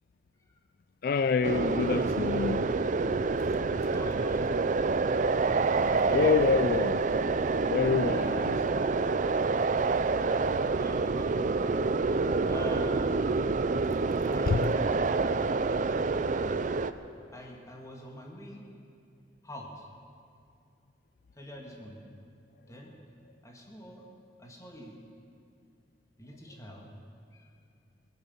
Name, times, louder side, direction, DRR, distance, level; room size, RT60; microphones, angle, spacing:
voice 1, 1.0-2.6 6.1-7.0 7.7-8.6 14.5-14.8, left 5 dB, 55° left, 0.3 m, -27 dB
sound 1, 1.4-16.9, right 3 dB, 45° right, 0.5 m, -27 dB
voice 2, 3.9-4.5 5.9-6.5 10.7-11.6 12.4-13.2 14.3-14.9 17.3-18.6 19.4-19.9 21.4-22.0 22.7-22.9 23.4-24.0 24.4-25.0 26.2-26.9 27.3-27.4, equal, 20° left, 2.0 m, -44 dB
18.5 x 10.5 x 7.2 m
head